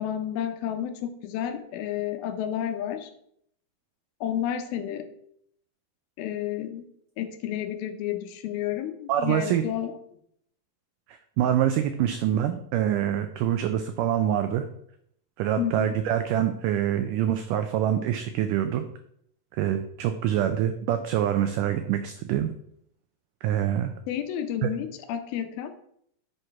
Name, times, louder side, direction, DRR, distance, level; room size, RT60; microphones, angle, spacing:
voice 1, 0.0-3.1 4.2-5.1 6.2-6.9 7.2-9.9 15.6-16.0 24.1-25.7, left 10 dB, 80° left, 8 dB, 2.7 m, -31 dB
voice 2, 9.1-9.6 11.1-14.7 15.4-18.8 19.5-22.5 23.4-23.9 24.6-24.7, right 10 dB, 90° right, 8 dB, 1.8 m, -25 dB
8.0 x 5.8 x 4.7 m, 0.70 s
omnidirectional pair, 4.4 m